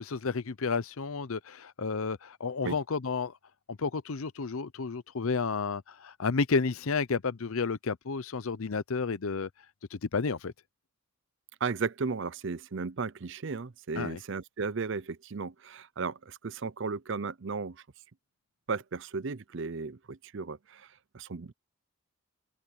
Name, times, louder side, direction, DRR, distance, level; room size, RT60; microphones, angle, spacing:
voice 1, 0.0-3.3 3.7-9.5 9.9-10.5 14.0-14.2, left 4 dB, 70° left, 0.7 m, -31 dB
voice 2, 11.6-17.8 18.7-20.9 21.1-21.5, right 4 dB, 55° right, 0.5 m, -35 dB
open air
head